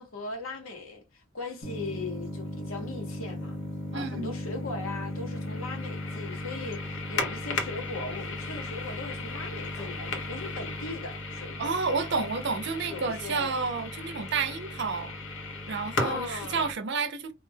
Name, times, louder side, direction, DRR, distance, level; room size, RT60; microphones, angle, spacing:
voice 1, 0.0-3.6 3.9-11.8 12.9-13.5 16.0-16.7, left 3 dB, 90° left, 1.0 m, -39 dB
sound 1, 1.6-16.7, left 2 dB, 65° left, 0.8 m, -35 dB
voice 2, 3.9-4.4 11.6-15.1 15.7-17.3, right 4 dB, 60° right, 0.5 m, -30 dB
2.4 x 2.2 x 3.2 m
head